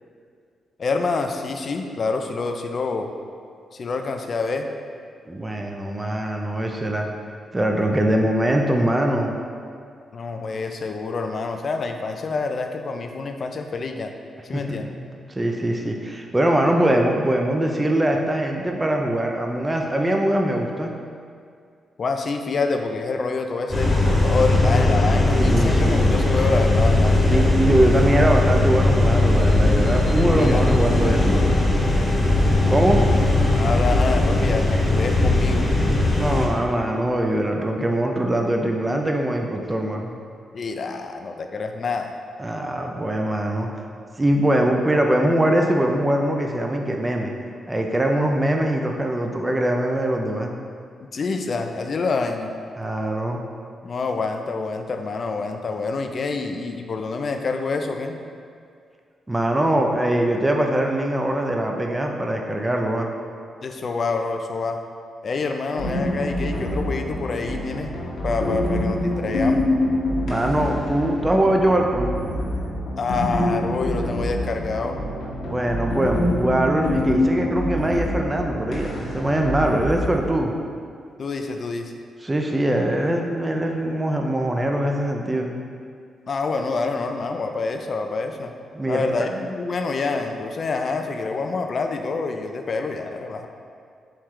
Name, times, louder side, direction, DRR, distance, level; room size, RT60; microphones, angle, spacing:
voice 1, 0.8-3.1 3.7-4.7 10.1-14.1 14.4-14.9 22.0-27.4 30.3-31.7 33.5-35.7 40.5-42.1 51.1-52.5 53.8-58.2 63.6-64.8 65.2-67.9 68.2-69.7 73.0-75.0 81.2-81.9 86.3-88.5 88.9-93.5, left 4 dB, 55° left, 5 dB, 0.4 m, -27 dB
voice 2, 5.3-7.1 7.5-9.3 14.5-14.6 14.9-15.0 15.3-20.9 25.3-26.1 27.3-31.6 32.7-33.0 36.1-40.1 42.4-43.7 44.2-47.3 47.7-50.5 52.8-53.4 59.3-63.1 70.2-72.1 75.4-80.5 82.2-85.5 88.7-89.3, right 1 dB, 20° right, 2 dB, 0.5 m, -22 dB
sound 1, 23.7-36.5, left 2 dB, 15° left, 1.0 m, -19 dB
sound 2, 65.8-80.2, left 1 dB, 75° left, 1.0 m, -26 dB
4.5 x 3.1 x 3.7 m, 2.3 s
cardioid pair, 75°, 0 cm